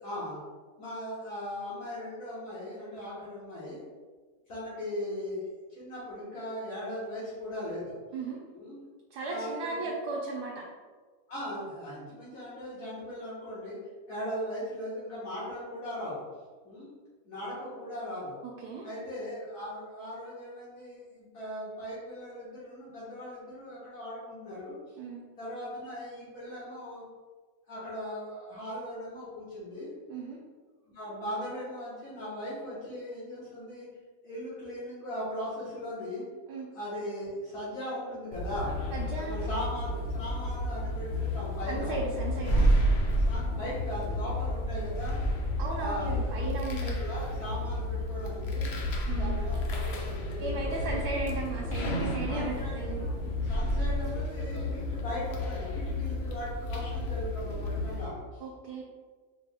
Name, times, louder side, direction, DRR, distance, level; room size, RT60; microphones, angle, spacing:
voice 1, 0.0-0.4 0.8-3.8 4.5-8.0 8.5-8.8 9.3-9.8 11.3-13.8 14.1-16.2 16.6-16.9 17.2-18.4 18.8-24.8 25.4-27.0 27.7-29.9 30.9-33.9 34.2-36.2 36.7-38.8 39.2-42.0 43.1-45.2 45.8-46.5 47.0-48.8 49.1-51.0 52.3-53.1 53.5-58.4, equal, 60° left, -10 dB, 1.5 m, -38 dB
voice 2, 9.1-10.5 18.4-18.9 25.0-25.2 30.1-30.4 36.5-36.7 38.9-39.4 41.7-42.7 45.6-47.0 49.1-49.4 50.4-53.1 58.4-58.8, right 3 dB, 75° right, -3 dB, 1.2 m, -36 dB
sound 1, 38.3-58.0, left 1 dB, 75° left, 0.6 m, -31 dB
4.9 x 2.1 x 3.4 m, 1.4 s
omnidirectional pair, 1.8 m